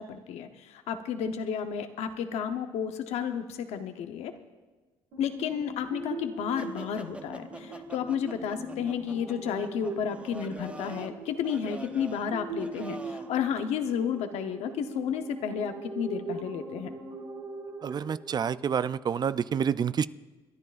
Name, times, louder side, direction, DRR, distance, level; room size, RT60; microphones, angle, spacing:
voice 1, 0.0-4.3 5.2-16.9, left 8 dB, 80° left, 8 dB, 0.9 m, -32 dB
sound 1, 5.1-19.5, right 2 dB, 80° right, 3.4 m, -41 dB
sound 2, 6.6-13.4, right 2 dB, 10° right, 0.7 m, -45 dB
voice 2, 17.8-20.1, right 7 dB, 40° right, 16 dB, 0.4 m, -28 dB
28.0 x 10.5 x 2.5 m, 1.2 s
cardioid pair, 80°, 11 cm